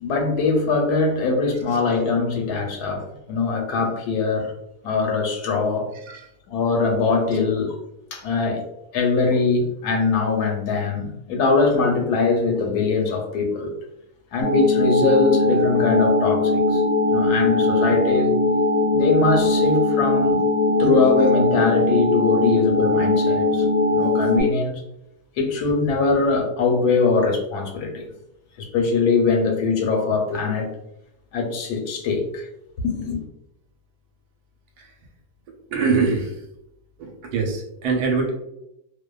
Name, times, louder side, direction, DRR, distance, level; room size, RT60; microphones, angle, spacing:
voice 1, 0.0-4.5 4.8-5.9 6.5-7.8 8.1-8.6 8.9-13.7 14.3-16.8 17.1-18.4 18.9-20.4 20.8-24.8 25.4-28.1 28.6-30.7 31.3-32.5 32.8-33.2, left 4 dB, 85° left, 1.1 m, -22 dB
sound 1, 14.4-24.4, left 2 dB, 70° left, 0.8 m, -20 dB
voice 2, 35.7-36.3 37.0-38.3, right 4 dB, 85° right, 1.1 m, -23 dB
2.7 x 2.2 x 2.2 m
omnidirectional pair, 1.6 m